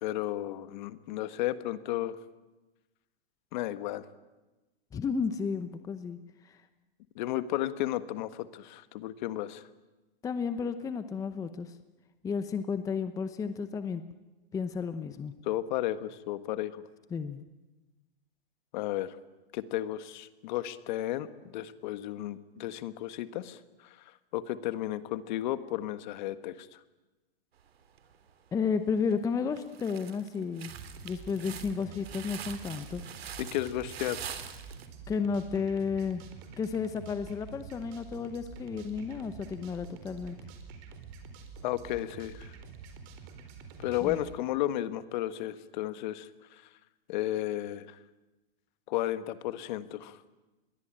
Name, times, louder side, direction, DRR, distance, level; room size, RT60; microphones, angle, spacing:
voice 1, 0.0-2.2 3.5-4.0 4.9-5.0 7.1-9.6 15.4-16.8 18.7-19.2 19.5-23.6 24.3-26.7 33.4-34.2 41.6-42.5 43.8-46.6 47.1-48.0 48.9-50.2, left 14 dB, 50° left, 12 dB, 1.6 m, -33 dB
voice 2, 4.9-6.2 6.4-6.6 10.2-11.8 12.2-14.0 14.5-15.3 17.1-17.4 28.5-30.7 31.0-33.0 35.1-36.2 36.6-40.4 44.0-44.2, left 5 dB, 10° left, 10 dB, 0.8 m, -32 dB
sound 1, 28.0-28.5 29.0-29.2 29.6-34.9, right 8 dB, 80° right, 3.3 m, -44 dB
sound 2, 30.6-44.3, right 5 dB, 40° right, 4.4 m, -47 dB
27.5 x 22.0 x 9.0 m, 1.1 s
hypercardioid pair, 145°, 30 cm